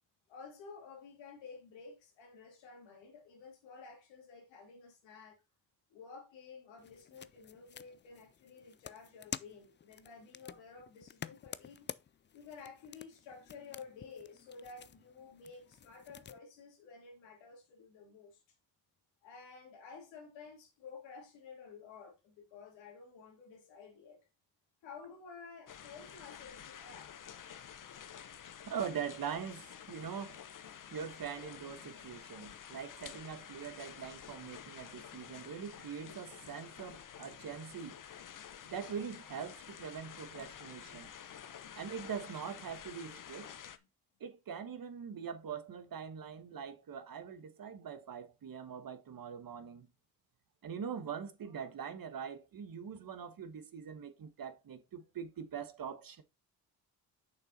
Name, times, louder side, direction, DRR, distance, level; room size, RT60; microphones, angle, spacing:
voice 1, 0.3-5.4 5.9-11.9 12.3-18.4 19.2-24.2 24.8-27.1, left 5 dB, 85° left, 2.8 m, -52 dB
sound 1, 6.8-16.4, left 8 dB, 25° left, 0.4 m, -50 dB
sound 2, 25.7-43.8, left 9 dB, 45° left, 0.9 m, -50 dB
voice 2, 28.7-30.4 30.9-38.0 38.7-41.1 41.7-43.5 44.2-49.9 50.6-56.2, right 7 dB, 50° right, 1.3 m, -43 dB
6.8 x 5.7 x 4.1 m
supercardioid pair, 60°, 43 cm